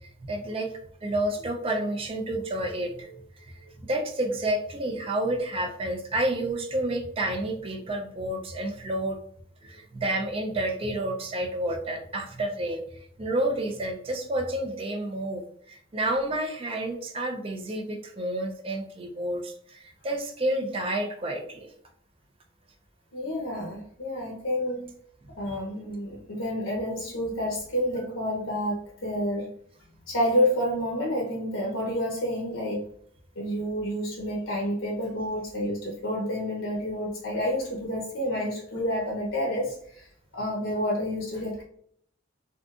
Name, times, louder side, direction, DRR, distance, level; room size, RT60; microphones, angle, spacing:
voice 1, 0.3-0.7 1.0-9.2 9.6-12.8 13.2-21.7 25.5-25.6, right 1 dB, 30° right, 4 dB, 0.5 m, -30 dB
voice 2, 23.1-24.9 25.4-29.5 30.1-32.8 33.4-40.1 40.3-41.6, equal, 85° left, -2 dB, 0.8 m, -29 dB
3.6 x 2.4 x 2.4 m, 0.64 s
head